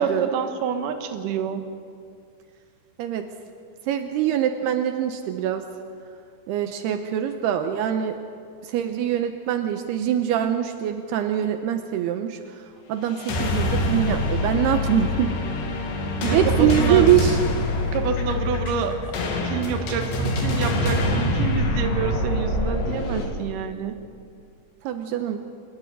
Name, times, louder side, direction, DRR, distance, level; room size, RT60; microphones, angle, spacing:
voice 1, 0.0-1.7 16.2-17.1 17.9-19.0 19.4-24.0, right 6 dB, 60° right, 6 dB, 2.6 m, -27 dB
voice 2, 3.9-5.6 6.5-8.2 8.6-12.4 12.9-15.3 16.3-17.4 24.8-25.4, right 10 dB, 80° right, 6 dB, 2.8 m, -23 dB
sound 1, 13.1-23.3, left 1 dB, 85° left, 4.5 m, -25 dB
26.5 x 12.0 x 9.7 m, 2.3 s
omnidirectional pair, 4.8 m